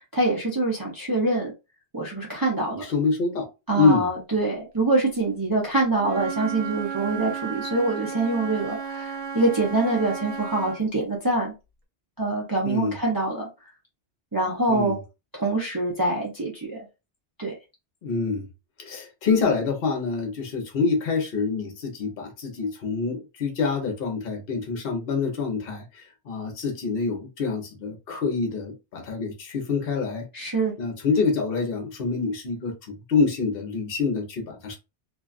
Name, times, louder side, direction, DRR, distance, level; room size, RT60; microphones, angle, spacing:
voice 1, 0.1-1.5 1.9-2.8 3.7-11.5 12.2-13.5 14.3-14.9 15.3-16.8 17.4-17.5 30.3-30.7, right 2 dB, 25° right, 0.6 m, -25 dB
voice 2, 2.9-3.5 3.7-4.1 12.6-13.0 14.7-15.0 18.0-18.5 18.8-30.3 30.8-34.8, left 4 dB, 60° left, 1.0 m, -26 dB
Wind instrument woodwind instrument, 6.0-10.8, right 7 dB, 60° right, 0.8 m, -34 dB
2.5 x 2.3 x 2.3 m
omnidirectional pair, 1.1 m